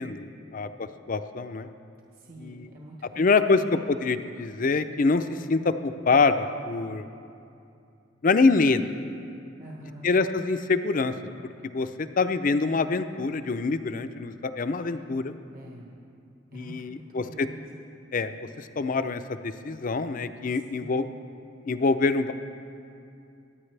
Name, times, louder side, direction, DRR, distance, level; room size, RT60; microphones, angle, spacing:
voice 1, 0.0-1.7 2.4-2.7 3.2-7.1 8.2-8.8 10.0-11.1 11.7-15.3 16.5-17.5 18.1-18.3 18.6-21.1 21.7-22.3, left 4 dB, 45° left, 10 dB, 0.5 m, -25 dB
voice 2, 2.1-3.7 9.6-10.1 14.8-15.1 15.5-15.9 16.5-17.6 20.5-21.1, right 1 dB, 45° right, -2 dB, 1.1 m, -46 dB
24.0 x 9.6 x 3.3 m, 2.6 s
head